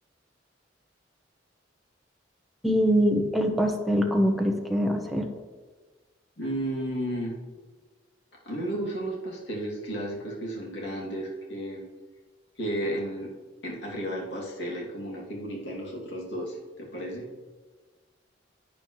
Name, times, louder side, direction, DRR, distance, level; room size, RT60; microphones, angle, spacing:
voice 1, 2.6-5.3, equal, ahead, 2 dB, 0.9 m, -23 dB
voice 2, 6.4-7.3 8.4-11.9 12.6-13.3 13.6-17.2, right 1 dB, 65° left, -3 dB, 2.5 m, -33 dB
11.0 x 9.0 x 3.2 m, 1.4 s
head